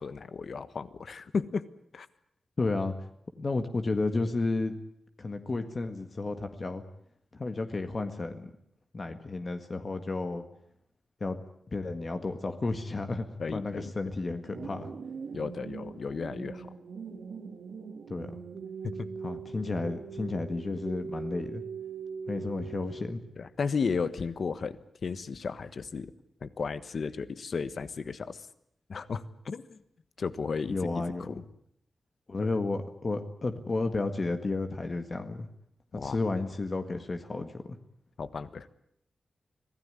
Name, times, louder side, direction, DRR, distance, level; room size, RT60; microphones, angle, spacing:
voice 1, 0.0-1.6 1.9-2.1 13.4-13.9 15.3-16.7 18.8-19.1 23.4-26.1 26.4-28.5 28.9-29.8 30.2-30.8 31.3-31.4 32.4-32.5 35.9-36.2 38.2-38.7, left 5 dB, 55° left, 14 dB, 1.4 m, -34 dB
voice 2, 2.6-2.9 3.4-4.7 5.2-6.8 7.3-8.5 8.9-10.4 11.2-11.4 11.7-14.9 18.1-18.4 19.2-21.6 22.3-23.2 30.7-31.4 32.3-35.5 36.0-37.8, left 3 dB, 35° left, 7 dB, 1.8 m, -32 dB
sound 1, 14.5-23.4, right 5 dB, 75° right, 2.7 m, -41 dB
25.5 x 17.5 x 9.9 m, 0.74 s
wide cardioid pair, 150°, 0 cm